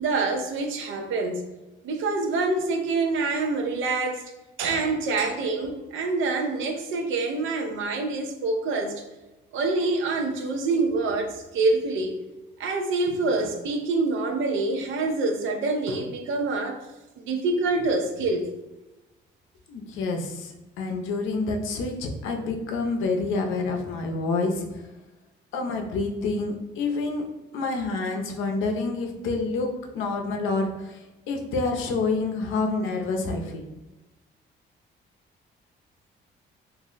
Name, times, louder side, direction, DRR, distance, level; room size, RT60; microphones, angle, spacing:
voice 1, 0.0-1.5 1.8-4.2 4.6-9.0 9.5-12.2 12.6-16.9 17.2-18.5, right 3 dB, 85° right, 4 dB, 0.5 m, -26 dB
voice 2, 19.7-24.9 25.5-27.2 27.5-33.7, left 3 dB, 85° left, 3 dB, 0.5 m, -28 dB
2.5 x 2.0 x 3.8 m, 1.0 s
cardioid pair, 90°, 20 cm